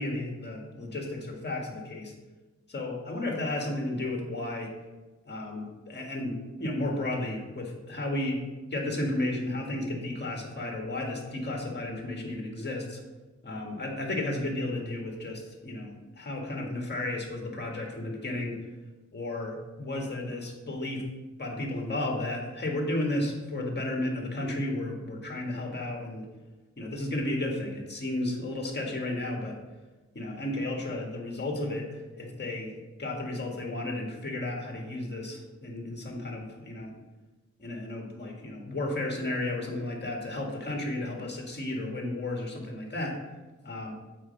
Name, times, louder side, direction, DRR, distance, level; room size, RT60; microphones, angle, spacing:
voice 1, 0.0-2.1 2.7-4.7 5.2-8.4 8.7-13.0 13.4-18.6 19.1-21.0 21.4-26.3 26.8-29.6 30.1-32.7 33.0-36.9 37.6-43.2 43.6-43.9, left 1 dB, 35° left, 0 dB, 1.7 m, -33 dB
7.8 x 4.2 x 5.2 m, 1.2 s
wide cardioid pair, 105°, 30 cm